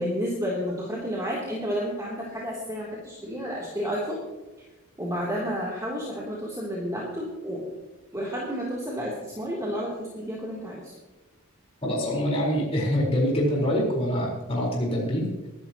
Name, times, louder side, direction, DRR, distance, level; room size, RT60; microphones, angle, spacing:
voice 1, 0.0-4.2 5.0-7.6 8.1-10.9, equal, 15° right, -5 dB, 3.1 m, -31 dB
voice 2, 11.8-15.3, equal, 30° left, -5 dB, 4.4 m, -25 dB
23.0 x 12.5 x 3.0 m, 1.1 s
head